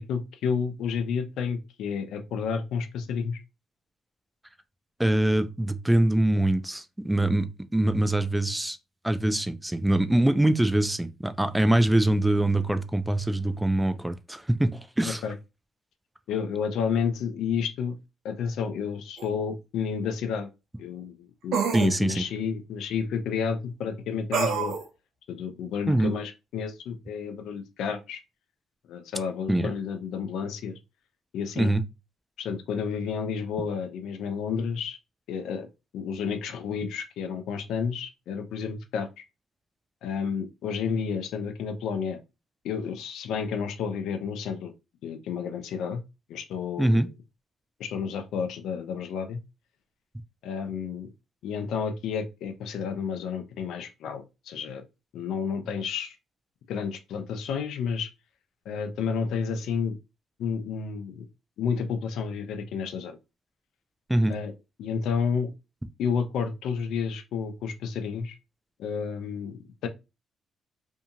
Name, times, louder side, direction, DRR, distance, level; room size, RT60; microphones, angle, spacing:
voice 1, 0.0-3.4 15.0-15.3 16.3-17.9 18.2-20.5 20.8-24.7 25.3-28.2 28.9-30.8 31.3-31.7 32.4-35.0 35.3-35.7 35.9-39.2 40.0-42.2 42.6-44.7 45.0-46.0 46.3-47.1 47.8-49.4 50.4-51.1 51.4-54.8 55.1-56.2 56.7-58.1 58.7-60.0 60.4-61.3 61.6-63.2 64.3-64.5 64.8-65.5 66.0-68.4 68.8-69.9, left 6 dB, 80° left, 0.5 m, -31 dB
voice 2, 5.0-8.8 9.0-15.2 21.7-22.2 25.9-26.1 29.5-29.7 31.6-31.8 46.8-47.1 64.1-64.4, right 1 dB, 10° right, 0.3 m, -24 dB
sound 1, 19.2-19.3 21.5-21.9 24.3-24.8, right 6 dB, 80° right, 0.7 m, -26 dB
2.7 x 2.7 x 2.4 m
cardioid pair, 90°, 0 cm